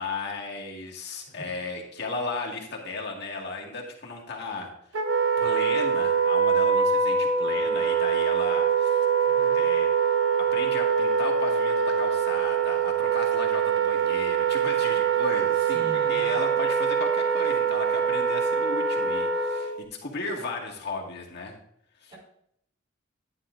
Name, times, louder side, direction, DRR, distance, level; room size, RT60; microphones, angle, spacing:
voice 1, 0.0-4.7 5.4-9.1 9.5-9.9 10.5-21.5 22.0-22.1, left 3 dB, 60° left, -1 dB, 1.8 m, -35 dB
Wind instrument woodwind instrument, 4.9-19.8, right 6 dB, 85° right, 0.9 m, -24 dB
voice 2, 9.3-9.6 15.7-16.4 22.1-22.2, equal, 30° right, -2 dB, 4.2 m, -42 dB
10.5 x 10.0 x 2.5 m, 0.71 s
head